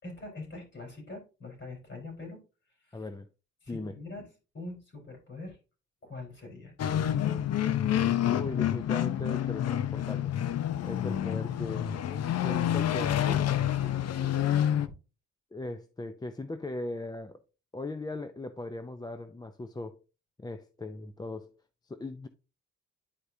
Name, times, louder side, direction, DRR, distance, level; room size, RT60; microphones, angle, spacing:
voice 1, 0.0-2.4 2.8-3.0 3.6-4.2 4.5-5.6 6.0-6.7 13.0-14.4 14.9-15.0, left 2 dB, 40° left, 4.3 m, -44 dB
voice 2, 2.9-3.3 3.7-4.0 8.3-10.3 10.8-13.2 15.5-17.4 17.7-20.0 20.4-21.6 21.8-22.3, left 2 dB, 15° left, 0.5 m, -39 dB
sound 1, 6.8-14.9, left 10 dB, 55° left, 0.7 m, -28 dB
10.0 x 4.7 x 2.7 m
cardioid pair, 90°, 30 cm